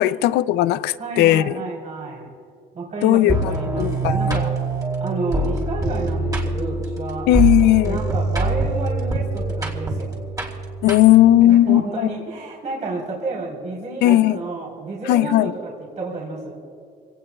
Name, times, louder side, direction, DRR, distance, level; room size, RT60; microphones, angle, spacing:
voice 1, 0.0-1.6 3.0-4.4 7.3-8.0 10.8-12.1 14.0-14.4 15.1-15.5, left 14 dB, 85° left, 0.5 m, -17 dB
voice 2, 1.0-2.3 2.7-4.5 5.0-7.3 7.8-10.3 11.4-16.5, right 3 dB, 45° right, 3.8 m, -30 dB
sound 1, 3.3-11.4, right 2 dB, 20° right, 3.0 m, -24 dB
26.0 x 18.0 x 2.4 m
cardioid pair, 110°, 17 cm